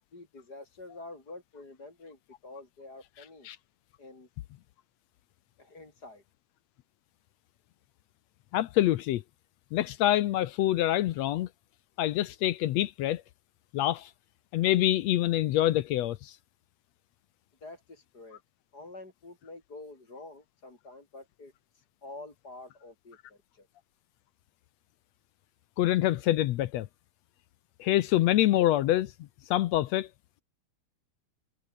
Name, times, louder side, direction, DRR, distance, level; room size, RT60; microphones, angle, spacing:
voice 1, 0.1-3.5 4.0-4.3 5.6-6.2 17.6-18.4 18.7-23.7, left 2 dB, 30° left, 4.9 m, -48 dB
voice 2, 8.5-9.2 9.7-11.5 12.0-13.2 13.7-14.1 14.5-16.4 25.8-26.9 27.8-29.1 29.5-30.1, left 14 dB, 75° left, 1.8 m, -26 dB
omnidirectional pair, 3.4 m